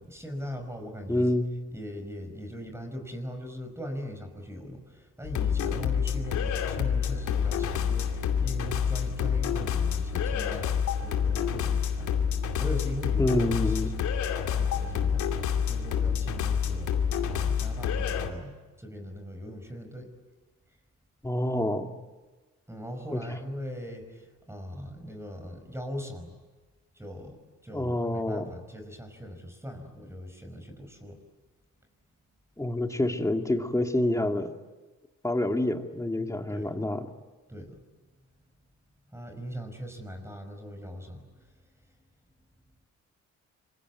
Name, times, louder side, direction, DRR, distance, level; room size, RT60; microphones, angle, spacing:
voice 1, 0.0-1.3 1.7-14.2 14.5-15.3 15.7-20.1 22.7-26.4 26.9-31.2 36.5-36.7 37.5-37.8 39.1-41.4, equal, 10° right, 5 dB, 5.3 m, -40 dB
voice 2, 1.1-1.5 13.2-13.9 21.2-21.9 23.1-23.2 27.7-28.5 32.6-34.5 35.2-37.0, left 1 dB, 10° left, 5 dB, 2.2 m, -27 dB
sound 1, 5.2-18.3, left 7 dB, 75° left, 2.6 m, -28 dB
26.5 x 22.5 x 9.5 m, 1.2 s
cardioid pair, 90°, 30 cm